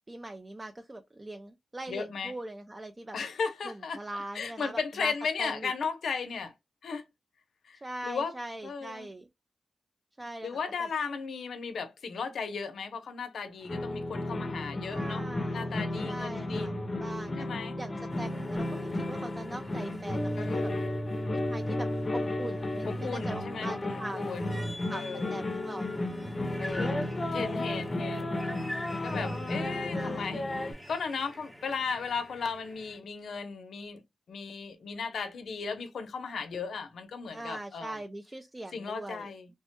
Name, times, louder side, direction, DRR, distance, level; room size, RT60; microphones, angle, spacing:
voice 1, 0.1-3.2 3.6-5.1 5.4-5.7 7.8-9.3 10.2-10.9 14.9-17.5 17.8-20.7 21.3-24.3 24.9-25.0 25.3-25.9 29.9-30.3 37.3-39.3, right 1 dB, 25° right, 0.4 m, -41 dB
voice 2, 1.9-2.3 3.1-4.0 4.3-6.5 6.8-7.0 7.6-8.3 8.6-9.1 10.4-15.2 15.5-16.7 17.4-17.8 20.4-20.9 23.0-25.4 26.6-28.3 29.0-34.0 34.3-38.0 38.7-39.5, left 5 dB, 90° left, 0.5 m, -36 dB
sound 1, 13.7-30.7, left 1 dB, 40° left, 0.6 m, -33 dB
sound 2, 18.1-33.0, equal, 5° right, 0.8 m, -47 dB
3.2 x 2.1 x 2.8 m
cardioid pair, 75°, 0 cm